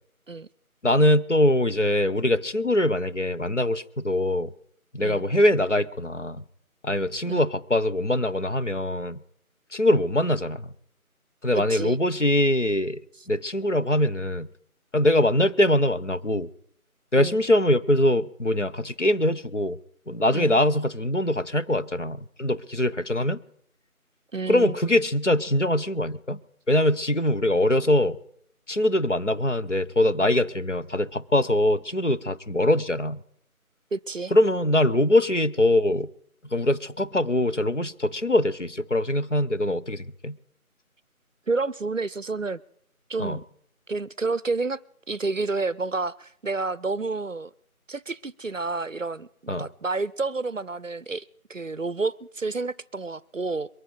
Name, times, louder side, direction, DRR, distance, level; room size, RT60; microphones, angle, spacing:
voice 1, 0.8-4.5 4.9-6.4 6.8-9.2 9.7-10.7 11.4-13.0 13.3-14.5 14.9-16.5 17.1-19.8 20.1-23.4 24.5-26.4 26.7-28.2 28.7-33.2 34.3-36.1 36.5-40.4 43.2-43.4 49.5-49.7, left 1 dB, 55° left, 0.7 m, -23 dB
voice 2, 11.6-12.0 17.2-17.4 20.3-20.6 24.3-24.8 33.9-34.3 41.5-42.6 43.1-43.4 43.9-44.8 45.1-47.5 47.9-53.7, right 3 dB, 60° right, 0.6 m, -30 dB
23.0 x 9.8 x 4.0 m
figure-of-eight pair, 175°, 44 cm